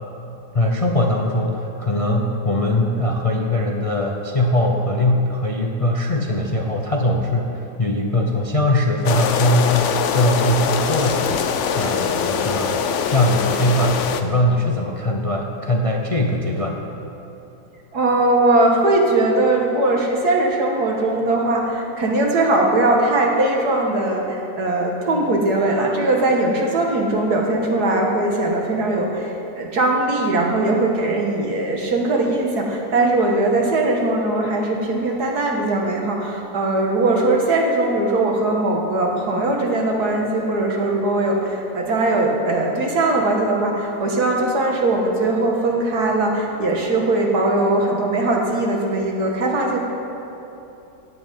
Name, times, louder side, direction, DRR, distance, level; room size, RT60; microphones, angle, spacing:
voice 1, 0.5-11.5 11.7-16.9, left 1 dB, 45° left, 1 dB, 0.4 m, -21 dB
sound 1, 9.0-14.2, left 7 dB, 60° left, 0.8 m, -22 dB
voice 2, 17.9-49.8, right 2 dB, 65° right, 0 dB, 2.0 m, -20 dB
15.5 x 5.6 x 9.2 m, 2.9 s
omnidirectional pair, 1.8 m